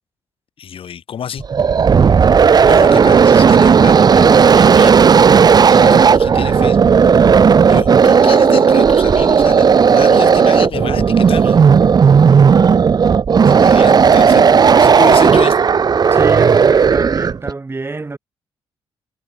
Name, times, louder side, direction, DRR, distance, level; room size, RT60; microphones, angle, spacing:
voice 1, 0.6-1.4 2.2-5.0 5.7-6.9 7.7-11.6 13.4-15.6, left 8 dB, 60° left, 2.9 m, -28 dB
sound 1, 1.4-17.5, right 6 dB, 40° right, 0.7 m, -11 dB
voice 2, 16.1-18.2, right 3 dB, 20° right, 1.2 m, -24 dB
cardioid pair, 85°, 10 cm